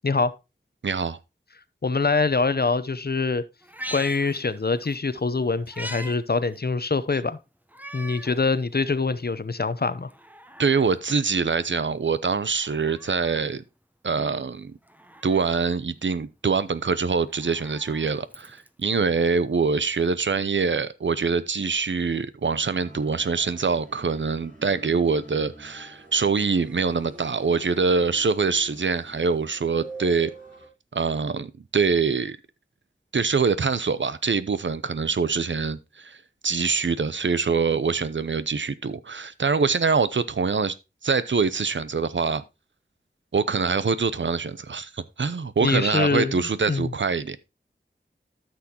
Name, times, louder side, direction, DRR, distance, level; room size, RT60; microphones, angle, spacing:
voice 1, 0.0-0.3 1.8-3.4 3.9-7.4 7.9-10.1 45.6-46.4 46.7-46.9, left 4 dB, 55° left, 0.7 m, -24 dB
voice 2, 0.8-1.2 10.6-13.6 14.0-14.8 15.2-30.3 30.9-32.4 33.1-40.7 41.0-42.4 43.3-47.4, right 5 dB, 80° right, 0.6 m, -24 dB
Meow, 3.6-5.0 5.3-6.2 6.5-6.6 7.7-8.4 8.9-9.0 10.0-11.0 12.5-13.5 14.9-15.7 17.2-18.8 20.0-20.1, equal, 10° right, 0.9 m, -41 dB
sound 1, 22.5-30.7, right 3 dB, 45° right, 4.1 m, -46 dB
13.0 x 6.2 x 2.9 m
wide cardioid pair, 50°, 19 cm